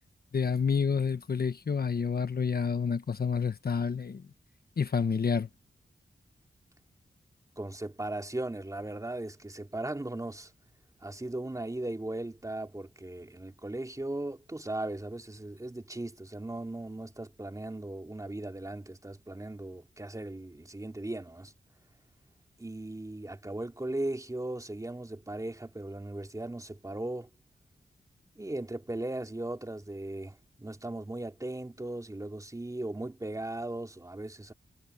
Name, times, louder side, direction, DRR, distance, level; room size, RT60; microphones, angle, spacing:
voice 1, 0.3-4.3 4.8-5.5, left 6 dB, 60° left, 1.2 m, -29 dB
voice 2, 7.6-10.5 11.0-21.5 22.6-27.3 28.4-34.5, right 1 dB, 20° right, 2.7 m, -37 dB
wide cardioid pair, 90°, 18 cm